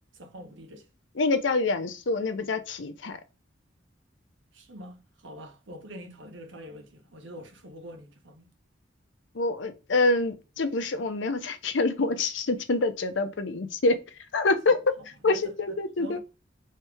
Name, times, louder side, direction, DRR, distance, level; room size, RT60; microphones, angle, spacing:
voice 1, 0.1-0.9 4.5-8.5 15.2-16.2, equal, 85° right, 1.0 m, -45 dB
voice 2, 1.2-3.2 9.3-14.0 14.3-14.8 15.2-16.2, left 3 dB, 80° left, 0.7 m, -26 dB
3.2 x 3.2 x 3.4 m
head